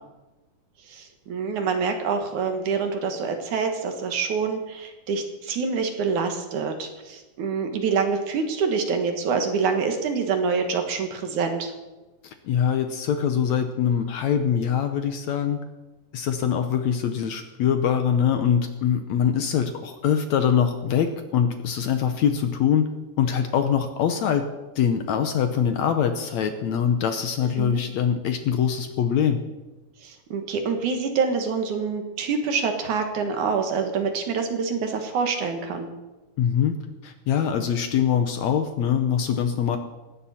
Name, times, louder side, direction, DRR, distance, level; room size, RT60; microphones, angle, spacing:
voice 1, 0.9-11.7 27.6-27.8 30.0-35.9, right 5 dB, 65° right, 5 dB, 2.9 m, -26 dB
voice 2, 12.4-15.6 16.1-22.9 23.2-24.5 24.8-29.4 36.4-36.8 37.0-39.8, left 8 dB, 70° left, 7 dB, 1.9 m, -23 dB
18.5 x 16.0 x 4.3 m, 1.1 s
omnidirectional pair, 3.9 m